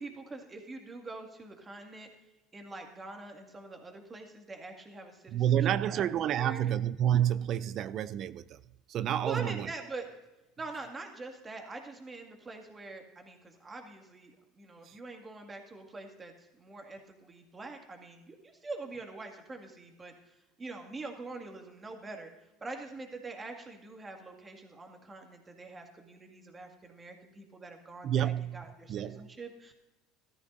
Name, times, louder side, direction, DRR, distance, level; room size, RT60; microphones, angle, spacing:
voice 1, 0.0-2.1 2.5-5.6 5.9-6.8 9.2-10.1 10.6-22.3 22.6-29.7, right 3 dB, 20° right, 2.1 m, -44 dB
voice 2, 5.3-8.6 8.9-9.7 14.9-15.0 28.0-28.6 28.9-29.2, right 10 dB, 50° right, 0.4 m, -29 dB
15.0 x 13.0 x 2.7 m
supercardioid pair, 110°, 0 cm